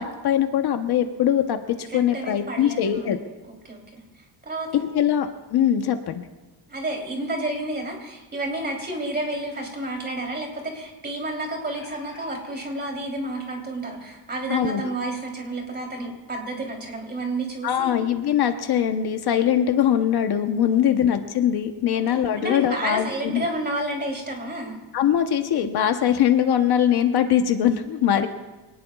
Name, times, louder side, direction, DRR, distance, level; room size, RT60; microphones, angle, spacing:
voice 1, 0.0-3.2 4.9-6.2 14.5-14.9 17.6-23.4 24.9-28.3, left 9 dB, 60° left, 6 dB, 1.0 m, -22 dB
voice 2, 1.9-3.1 3.5-4.0 4.4-4.8 6.7-18.0 20.7-20.8 21.9-22.0 22.3-24.8 28.1-28.3, right 2 dB, 20° right, 0 dB, 3.4 m, -31 dB
sound 1, 11.3-12.6 13.5-13.6 14.0-14.1, left 2 dB, 35° left, 3.1 m, -47 dB
25.0 x 19.0 x 2.4 m, 1.1 s
cardioid pair, 175°, 44 cm